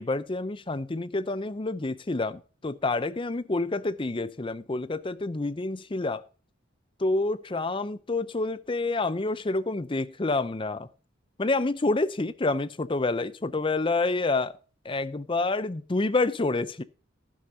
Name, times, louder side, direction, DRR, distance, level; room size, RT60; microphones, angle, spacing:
voice 1, 0.0-6.2 7.0-10.9 11.4-14.5 14.8-16.8, left 2 dB, 25° left, 0.6 m, -28 dB
11.5 x 11.5 x 2.8 m
head